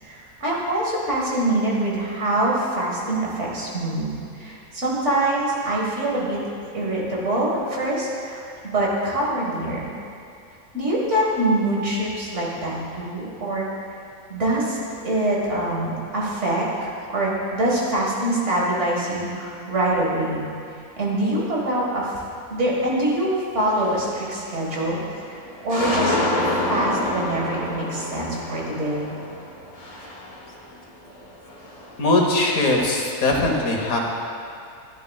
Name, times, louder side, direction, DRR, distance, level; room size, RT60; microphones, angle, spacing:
voice 1, 0.0-6.4 6.7-9.9 10.7-13.7 14.3-20.5 21.0-22.2 22.5-25.0 25.3-26.2 26.7-29.2, right 1 dB, 55° right, -4 dB, 2.0 m, -24 dB
sound 1, 23.6-24.0 24.5-25.1 25.4-30.9 31.1-32.3, left 1 dB, 25° left, 1.3 m, -28 dB
voice 2, 32.0-34.0, left 2 dB, 70° left, 0 dB, 1.6 m, -20 dB
10.5 x 10.5 x 2.3 m, 2.4 s
omnidirectional pair, 1.5 m